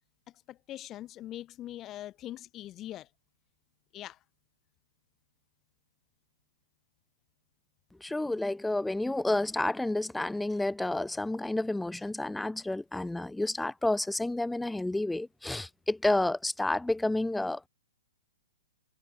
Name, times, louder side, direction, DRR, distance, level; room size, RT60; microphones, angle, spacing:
voice 1, 0.5-3.1 3.9-4.2, left 13 dB, 30° left, 3.4 m, -42 dB
voice 2, 8.0-17.6, left 2 dB, 5° left, 0.4 m, -30 dB
hypercardioid pair, 120°, 0 cm